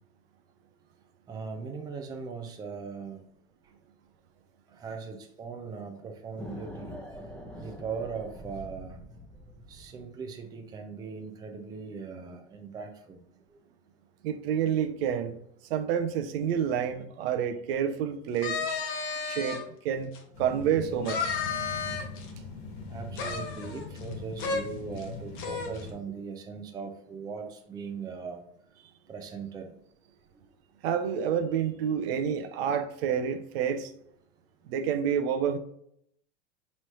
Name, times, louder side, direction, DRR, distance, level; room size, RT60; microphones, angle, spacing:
voice 1, 1.3-3.2 4.7-6.9 7.6-9.0 9.7-13.2 22.9-28.4 29.1-29.8, right 5 dB, 10° right, 0.4 m, -39 dB
sound 1, 6.4-10.1, equal, 5° left, 0.9 m, -44 dB
voice 2, 14.2-15.4 15.7-18.6 19.3-20.1 20.4-21.3 24.4-24.6 30.8-33.9 34.7-35.6, right 8 dB, 60° right, 0.6 m, -28 dB
sound 2, 18.4-19.6 20.1-20.2 21.0-22.3 23.1-24.1 24.4-24.6 25.0-25.1 25.4-25.8, left 5 dB, 40° left, 0.9 m, -32 dB
sound 3, 20.3-25.9, left 4 dB, 70° left, 1.4 m, -41 dB
4.2 x 3.1 x 3.0 m
hypercardioid pair, 115°, 33 cm